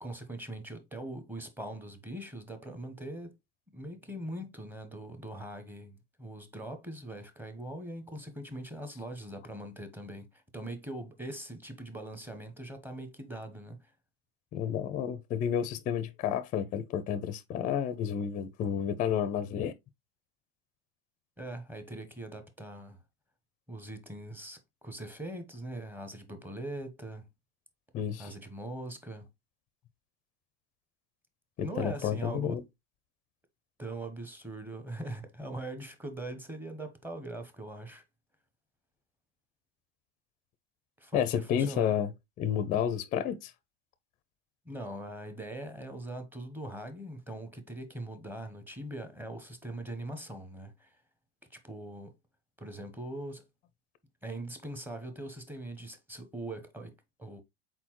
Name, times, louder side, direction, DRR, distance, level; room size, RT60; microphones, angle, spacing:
voice 1, 0.0-3.3 3.7-13.9 21.4-23.0 23.7-27.3 28.2-29.3 31.6-32.6 33.8-38.0 41.0-41.9 44.6-51.0 51.5-52.1 52.6-53.5 54.2-57.4, right 1 dB, 5° right, 0.7 m, -41 dB
voice 2, 14.5-19.7 27.9-28.3 31.6-32.6 41.1-42.1 42.4-43.5, left 9 dB, 25° left, 0.4 m, -31 dB
4.3 x 4.0 x 2.9 m
supercardioid pair, 120°, 32 cm